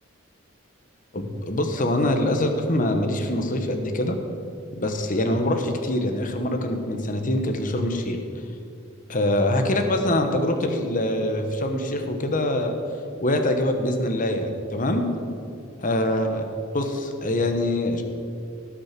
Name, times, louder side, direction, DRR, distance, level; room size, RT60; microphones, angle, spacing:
voice 1, 1.1-4.2 4.7-8.2 9.1-12.8 13.2-15.1 15.8-16.5 16.7-18.0, left 1 dB, 40° left, 5 dB, 1.1 m, -24 dB
18.0 x 6.3 x 6.0 m, 2.5 s
head